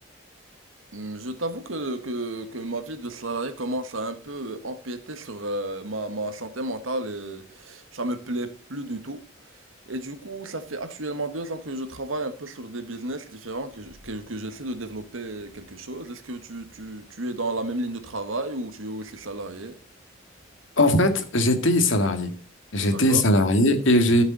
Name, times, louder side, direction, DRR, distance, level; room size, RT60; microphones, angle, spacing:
voice 1, 0.9-9.2 9.9-19.8 22.9-23.2, right 2 dB, 90° right, 1.6 m, -32 dB
voice 2, 20.8-22.3 22.7-24.2, left 1 dB, 75° left, 2.0 m, -20 dB
13.5 x 7.1 x 4.0 m
head